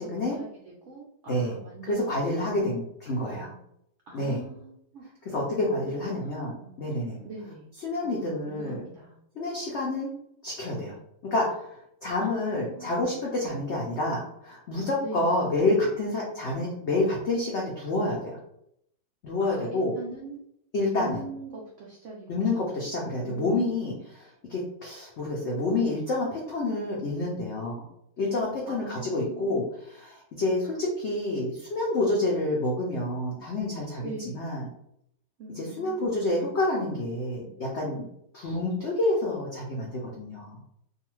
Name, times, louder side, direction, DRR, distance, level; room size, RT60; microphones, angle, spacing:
voice 1, 0.0-2.7 3.1-3.6 4.1-5.5 5.8-6.8 7.2-7.7 8.0-9.2 12.2-13.0 14.9-15.4 19.4-20.4 20.8-23.8 28.7-29.6 34.0-34.5 35.4-36.1, right 3 dB, 80° right, -2 dB, 0.6 m, -43 dB
voice 2, 1.9-3.5 4.1-4.4 5.3-7.2 7.8-8.8 9.4-10.1 10.4-11.0 11.2-11.7 12.0-18.4 19.2-19.9 20.7-21.2 22.3-27.8 28.2-34.1 34.3-34.6 35.6-38.1 38.3-40.6, left 2 dB, 90° left, -3 dB, 0.6 m, -28 dB
2.6 x 2.4 x 3.0 m, 0.74 s
omnidirectional pair, 1.9 m